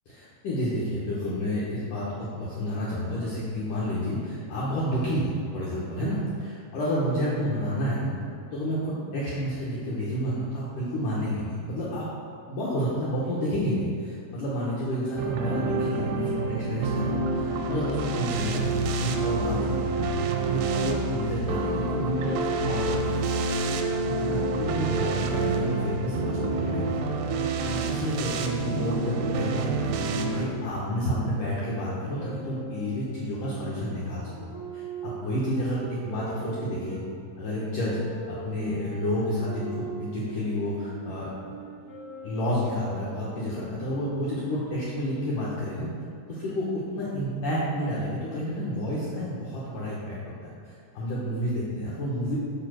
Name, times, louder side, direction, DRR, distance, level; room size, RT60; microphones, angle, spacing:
voice 1, 0.1-8.1 8.5-12.1 12.5-20.1 20.5-23.1 24.2-27.3 27.6-37.0 37.4-38.0 38.3-41.6 42.2-45.9 46.3-52.4, equal, 85° left, -7 dB, 1.8 m, -30 dB
sound 1, 15.2-30.5, right 3 dB, 85° right, 2.4 m, -28 dB
sound 2, 31.3-37.1 37.8-43.4, right 3 dB, 65° left, 0.9 m, -42 dB
7.4 x 4.3 x 6.2 m, 2.4 s
omnidirectional pair, 5.2 m